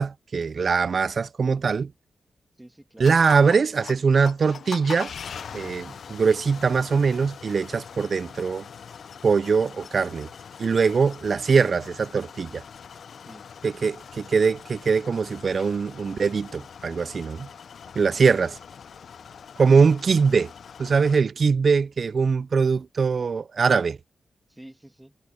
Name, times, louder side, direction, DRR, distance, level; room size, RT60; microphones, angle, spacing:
voice 1, 0.0-1.9 3.0-5.1 5.5-8.7 9.2-10.3 10.6-12.6 13.6-17.5 18.0-18.5 19.6-20.5 20.8-24.0, right 5 dB, 55° right, 0.3 m, -22 dB
voice 2, 2.6-3.2 13.3-13.5 13.8-14.0 17.9-18.6 24.5-25.2, right 1 dB, 10° right, 2.2 m, -49 dB
sound 1, 3.0-21.2, left 7 dB, 70° left, 0.4 m, -42 dB
cardioid pair, 65°, 0 cm